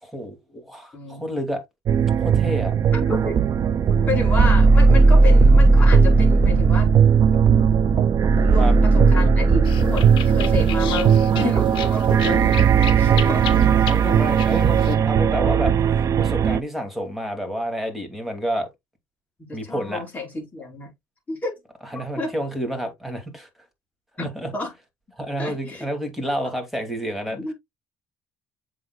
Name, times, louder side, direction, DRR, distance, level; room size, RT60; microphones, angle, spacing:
voice 1, 0.0-1.6 2.2-2.7 8.6-8.7 13.0-18.7 19.5-20.0 21.9-23.5 24.2-24.5 25.2-27.5, equal, ahead, 2.2 m, -29 dB
voice 2, 0.9-1.3 2.9-3.4 4.0-6.9 8.4-13.5 19.5-20.9 21.3-21.6 22.2-22.3 24.2-24.3 24.5-24.7 25.4-25.8 27.3-27.5, left 3 dB, 15° left, 4.7 m, -30 dB
sound 1, 1.9-16.6, right 5 dB, 35° right, 0.4 m, -17 dB
sound 2, 9.6-14.9, left 9 dB, 60° left, 1.6 m, -34 dB
7.6 x 6.2 x 2.3 m
cardioid pair, 160°, 9 cm